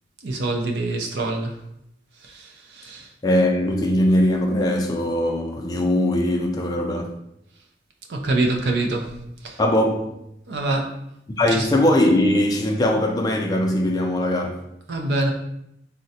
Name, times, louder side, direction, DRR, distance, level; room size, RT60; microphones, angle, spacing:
voice 1, 0.2-1.5 2.2-3.1 8.1-9.1 9.4-9.6 10.5-10.9 11.5-11.7 14.9-15.3, right 2 dB, 80° right, 2 dB, 0.5 m, -25 dB
voice 2, 3.2-7.1 9.6-10.1 11.4-14.6, left 1 dB, 20° left, 2 dB, 0.3 m, -20 dB
3.7 x 2.1 x 2.7 m, 0.78 s
head